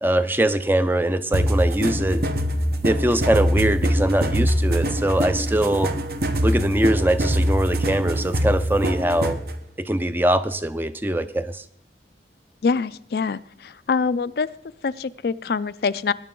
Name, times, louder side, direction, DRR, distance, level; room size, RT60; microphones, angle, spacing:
voice 1, 0.0-2.2 2.8-5.9 6.4-9.4 9.8-11.6, right 1 dB, 10° right, 12 dB, 0.5 m, -22 dB
sound 1, 1.3-9.5, equal, 60° right, 1.0 m, -23 dB
voice 2, 12.6-14.5 14.8-16.1, left 5 dB, 60° left, 15 dB, 0.4 m, -24 dB
19.5 x 10.0 x 3.8 m, 0.67 s
head